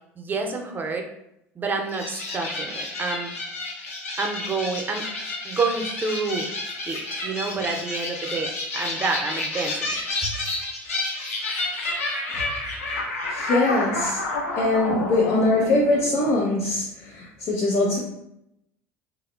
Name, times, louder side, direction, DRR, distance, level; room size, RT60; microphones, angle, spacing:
voice 1, 0.2-1.1 1.6-3.3 4.2-5.1 5.4-6.5 6.9-9.9 10.2-10.3, right 4 dB, 25° right, 3 dB, 0.5 m, -28 dB
sound 1, 1.9-16.5, left 2 dB, 90° left, 0.6 m, -30 dB
voice 2, 13.3-14.2 14.6-18.0, left 2 dB, 55° left, -4 dB, 0.7 m, -22 dB
3.5 x 2.0 x 2.3 m, 0.82 s
hypercardioid pair, 75°, 7 cm